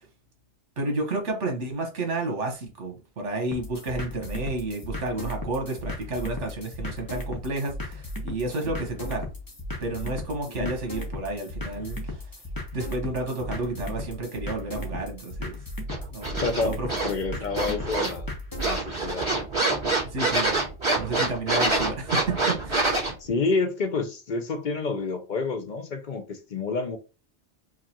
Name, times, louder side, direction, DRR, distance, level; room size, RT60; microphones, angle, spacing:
voice 1, 0.8-9.3 9.8-12.3 12.7-15.6 16.1-16.4 16.7-16.9 20.0-20.5 20.9-23.0, right 2 dB, 80° right, 1.5 m, -31 dB
sound 1, 3.5-18.8, left 1 dB, 20° left, 0.8 m, -36 dB
sound 2, 15.9-17.1 17.5-18.3 18.6-23.1, right 2 dB, 25° right, 1.7 m, -26 dB
voice 2, 16.4-18.3 18.7-19.3 23.2-27.0, left 4 dB, 50° left, 0.6 m, -29 dB
4.8 x 2.4 x 2.9 m
omnidirectional pair, 1.2 m